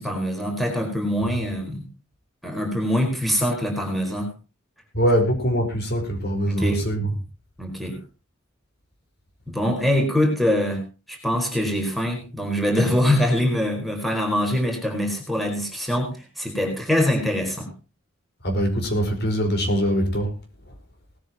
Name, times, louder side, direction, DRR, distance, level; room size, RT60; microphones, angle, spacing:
voice 1, 0.0-1.9 2.4-4.3 6.5-6.8 7.6-8.0 9.5-17.7, left 1 dB, ahead, 4.6 m, -24 dB
voice 2, 4.9-7.1 18.4-20.3, equal, 55° left, 4.8 m, -23 dB
19.5 x 13.5 x 3.0 m
head